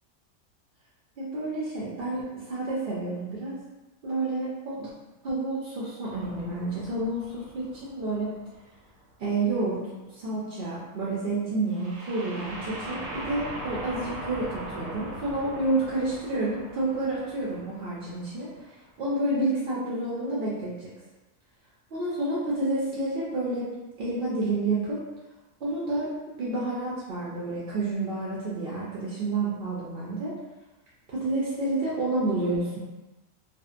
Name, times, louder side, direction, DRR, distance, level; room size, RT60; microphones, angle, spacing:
voice 1, 1.2-3.6 4.0-4.9 5.2-8.3 9.2-9.8 10.1-20.9 21.9-25.0 25.6-30.3 31.1-32.8, right 2 dB, 65° right, -7 dB, 0.5 m, -29 dB
sound 1, 6.1-8.9 11.7-18.6, right 1 dB, 85° right, 1.0 m, -40 dB
2.6 x 2.0 x 2.4 m, 1.1 s
omnidirectional pair, 1.4 m